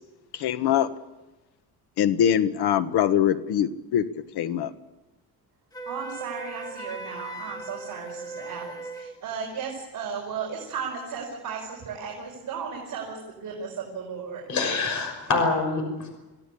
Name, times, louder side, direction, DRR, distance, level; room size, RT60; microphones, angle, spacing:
voice 1, 0.4-0.9 2.0-4.0 4.4-4.7, left 10 dB, 90° left, 11 dB, 1.4 m, -23 dB
Wind instrument woodwind instrument, 5.7-9.1, right 2 dB, 10° left, 1.9 m, -38 dB
voice 2, 5.9-14.4, right 6 dB, 55° right, -2 dB, 5.5 m, -35 dB
voice 3, 14.5-16.1, left 3 dB, 50° left, 4 dB, 6.0 m, -25 dB
26.5 x 16.5 x 8.6 m, 1.1 s
cardioid pair, 155°, 38 cm